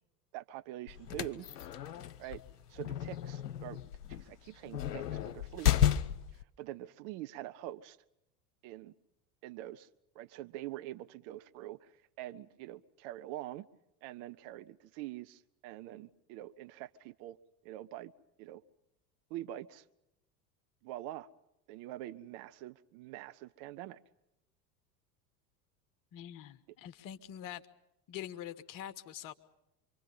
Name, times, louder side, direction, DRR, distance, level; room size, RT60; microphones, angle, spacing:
voice 1, 0.3-1.5 2.2-2.4 2.7-3.8 4.1-5.9 6.3-8.0 8.6-8.9 9.4-9.9 10.1-11.9 12.2-13.7 14.0-17.4 17.6-18.1 18.4-18.6 19.3-19.8 20.8-21.3 21.7-24.0, right 14 dB, 45° right, 12 dB, 0.9 m, -45 dB
sound 1, 0.9-6.4, left 10 dB, 70° left, 1.2 m, -33 dB
voice 2, 26.1-27.6 28.1-29.3, left 11 dB, 40° left, 10 dB, 1.5 m, -44 dB
26.5 x 24.5 x 5.6 m, 0.86 s
figure-of-eight pair, 80°, 50 cm